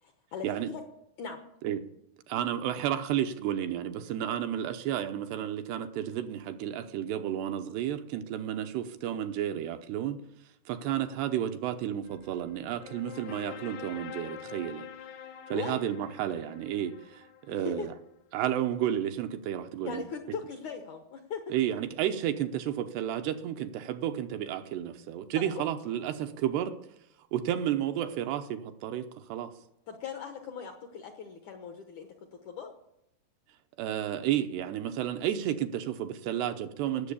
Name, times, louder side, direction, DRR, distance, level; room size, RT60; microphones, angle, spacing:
voice 1, 0.0-0.8 1.2-1.4 15.5-15.8 17.5-17.9 19.8-21.4 25.5-25.6 29.9-32.1 32.5-32.7, left 6 dB, 65° left, 5 dB, 2.0 m, -39 dB
voice 2, 2.3-10.2 10.7-14.9 15.5-17.9 18.3-20.1 21.5-26.8 27.3-29.5 33.8-37.1, right 11 dB, 80° right, 7 dB, 2.9 m, -32 dB
sound 1, 12.1-18.0, left 8 dB, 85° left, 3.2 m, -46 dB
18.5 x 7.5 x 8.4 m, 0.80 s
omnidirectional pair, 4.9 m